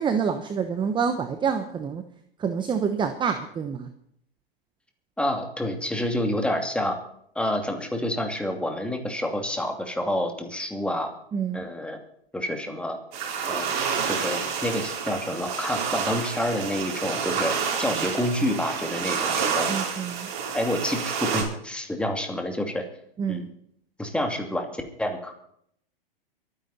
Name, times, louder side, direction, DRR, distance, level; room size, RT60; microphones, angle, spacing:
voice 1, 0.0-2.0 2.4-3.9 11.3-11.6 19.7-20.3 23.2-23.5, right 6 dB, 15° right, 8 dB, 1.0 m, -27 dB
voice 2, 5.2-7.0 7.3-11.1 11.5-12.0 12.3-13.0 13.5-13.7 14.1-19.7 20.5-22.8 23.3-23.5 24.0-25.3, left 1 dB, 5° left, 4 dB, 2.6 m, -28 dB
sound 1, 13.1-21.4, right 6 dB, 55° right, 4.3 m, -29 dB
23.5 x 9.8 x 4.2 m, 0.68 s
hypercardioid pair, 115°, 29 cm